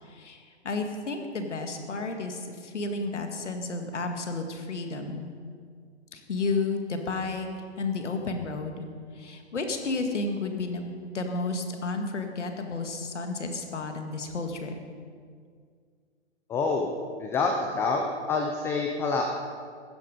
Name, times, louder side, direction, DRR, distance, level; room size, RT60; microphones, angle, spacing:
voice 1, 0.0-5.2 6.1-7.5 7.8-8.9 9.1-14.7, left 3 dB, 90° left, 5 dB, 1.9 m, -32 dB
voice 2, 16.5-16.9 17.2-19.2, left 4 dB, 5° left, 2 dB, 0.4 m, -27 dB
15.0 x 11.0 x 5.2 m, 2.1 s
hypercardioid pair, 135°, 35 cm